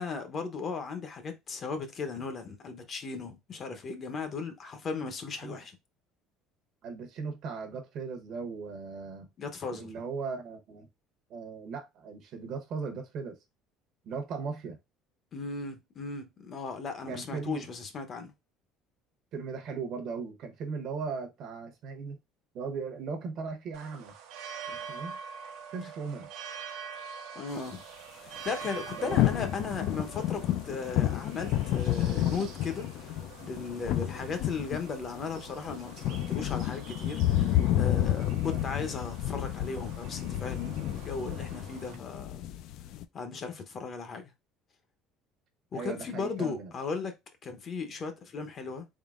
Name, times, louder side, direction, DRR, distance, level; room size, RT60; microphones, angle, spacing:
voice 1, 0.0-5.7 9.4-9.9 15.3-18.3 27.3-27.8 28.2-42.4 43.1-44.3 45.7-47.1 47.4-48.9, left 4 dB, 35° left, 0.7 m, -37 dB
voice 2, 6.8-9.3 9.7-10.9 11.3-13.4 14.0-14.8 17.1-17.7 19.3-22.2 22.5-24.1 24.7-25.2 25.7-26.3 28.9-29.4 29.7-29.8 38.4-38.6 45.7-46.7, right 5 dB, 50° right, 0.9 m, -38 dB
sound 1, 23.7-42.0, right 7 dB, 80° right, 0.8 m, -46 dB
sound 2, 28.5-43.0, left 13 dB, 60° left, 0.3 m, -30 dB
3.9 x 3.7 x 2.4 m
cardioid pair, 150°, 0 cm